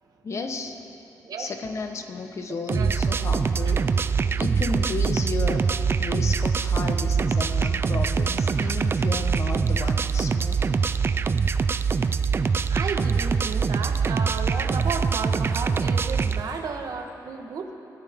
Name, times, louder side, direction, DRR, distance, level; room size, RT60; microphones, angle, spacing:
voice 1, 0.2-0.8 1.4-4.0 4.4-5.6 6.0-10.8, left 4 dB, 45° left, 5 dB, 1.2 m, -33 dB
voice 2, 2.5-3.0 12.7-17.7, right 5 dB, 65° right, 4 dB, 1.5 m, -33 dB
sound 1, 2.7-16.4, right 5 dB, 35° right, 0.4 m, -23 dB
27.5 x 13.5 x 3.7 m, 2.8 s
wide cardioid pair, 135°, 7 cm